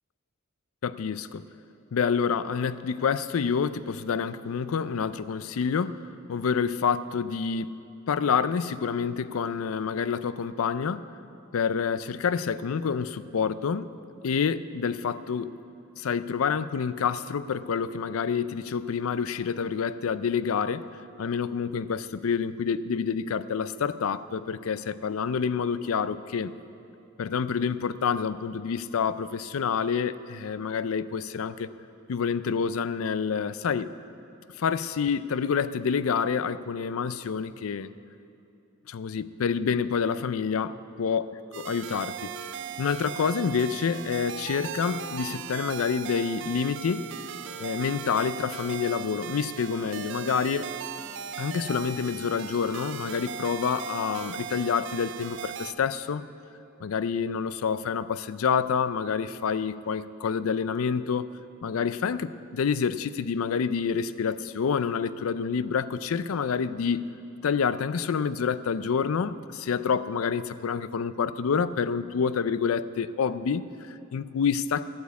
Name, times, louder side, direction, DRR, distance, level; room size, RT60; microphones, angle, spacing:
voice 1, 0.8-1.4 1.9-7.7 8.1-11.1 11.5-13.9 14.2-15.5 16.0-20.8 21.2-26.5 27.2-31.7 32.1-33.9 34.6-37.9 38.9-41.2 41.7-42.3 42.8-47.1 47.6-50.7 51.4-56.2 56.8-61.3 61.6-67.1 67.4-74.9, left 6 dB, 85° left, 15 dB, 0.4 m, -28 dB
sound 1, 41.5-55.7, right 8 dB, 60° right, 0.5 m, -38 dB
13.0 x 7.2 x 8.3 m, 2.7 s
head